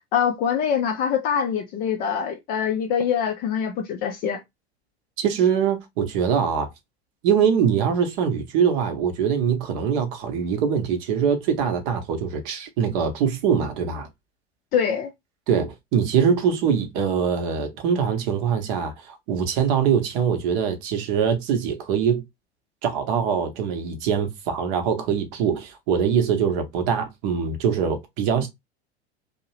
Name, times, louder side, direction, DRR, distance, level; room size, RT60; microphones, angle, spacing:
voice 1, 0.1-4.4 14.7-15.1, left 7 dB, 30° left, 0.4 m, -24 dB
voice 2, 5.2-6.7 7.2-14.1 15.5-22.2 22.8-28.5, right 7 dB, 45° right, 0.8 m, -23 dB
2.6 x 2.0 x 2.9 m
figure-of-eight pair, 80°, 33 cm